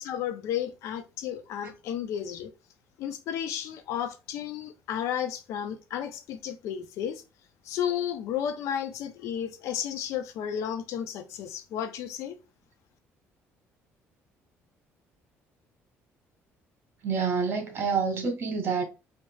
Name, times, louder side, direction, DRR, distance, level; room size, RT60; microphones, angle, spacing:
voice 1, 0.0-2.5 3.0-7.2 7.6-12.4, left 9 dB, 75° left, 0.6 m, -33 dB
voice 2, 17.0-18.8, right 5 dB, 50° right, 1.8 m, -27 dB
4.5 x 2.9 x 2.3 m
cardioid pair, 100°, 5 cm